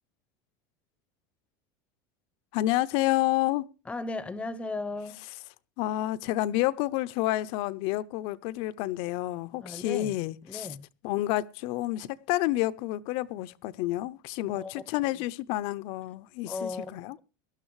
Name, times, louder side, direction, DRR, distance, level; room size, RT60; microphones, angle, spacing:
voice 1, 2.5-3.7 5.8-10.7 11.0-17.2, left 16 dB, 55° left, 0.6 m, -29 dB
voice 2, 3.9-5.2 9.6-10.2 10.5-10.9 14.5-14.9 16.5-17.0, left 3 dB, 10° left, 0.7 m, -36 dB
18.5 x 12.0 x 3.1 m
supercardioid pair, 145°, 11 cm